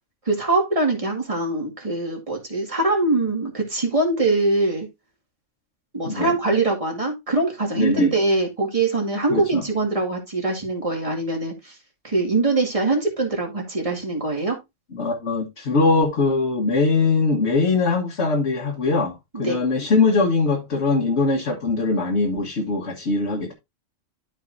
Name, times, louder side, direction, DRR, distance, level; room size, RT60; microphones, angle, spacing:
voice 1, 0.3-4.9 5.9-11.7 12.0-14.6 19.3-19.6, right 2 dB, 25° right, 2.1 m, -23 dB
voice 2, 7.8-8.1 9.3-9.6 14.9-23.5, left 3 dB, 60° left, 1.6 m, -21 dB
12.0 x 5.1 x 2.6 m
omnidirectional pair, 1.3 m